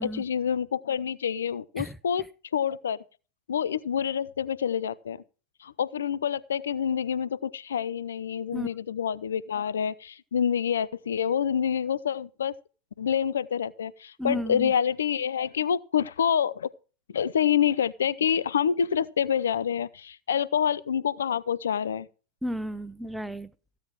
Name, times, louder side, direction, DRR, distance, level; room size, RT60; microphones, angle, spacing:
voice 1, 0.0-2.3 2.5-3.0 3.5-5.2 5.6-12.6 13.0-16.7 17.1-22.1, left 8 dB, 65° left, 0.6 m, -27 dB
voice 2, 14.2-14.7 22.4-23.5, equal, 5° right, 0.7 m, -33 dB
15.0 x 8.8 x 4.7 m
figure-of-eight pair, 90°, 0 cm